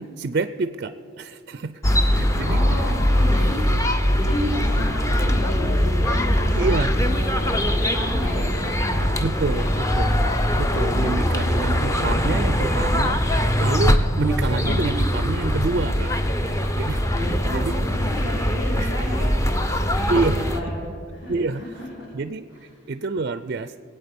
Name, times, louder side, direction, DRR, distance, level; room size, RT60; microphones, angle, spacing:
voice 1, 0.0-2.6 6.5-6.9 9.2-10.2 10.6-13.2 13.6-16.1 16.8-17.7 18.8-18.9 20.1-20.5 21.3-21.6 22.1-23.8, right 3 dB, 45° right, 11 dB, 0.4 m, -27 dB
sound 1, 1.8-20.6, equal, 15° left, 0.6 m, -22 dB
voice 2, 2.4-3.6 4.1-9.7 10.9-12.5 14.6-15.0 17.1-21.8 22.5-22.6, left 1 dB, 60° left, -8 dB, 4.3 m, -32 dB
22.0 x 8.7 x 5.2 m, 2.5 s
head